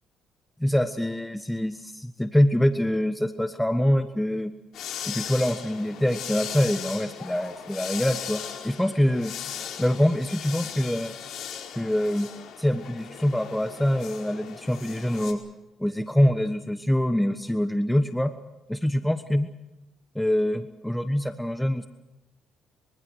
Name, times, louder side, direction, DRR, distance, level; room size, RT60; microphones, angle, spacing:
voice 1, 0.6-4.5 5.0-9.3 9.8-11.1 11.8-12.3 12.6-15.4 15.8-18.3 18.7-19.5 20.1-21.9, equal, 5° left, 8 dB, 1.2 m, -25 dB
sound 1, 4.7-15.3, left 8 dB, 70° left, 4.6 m, -38 dB
25.0 x 24.0 x 6.4 m, 0.99 s
cardioid pair, 105°, 0 cm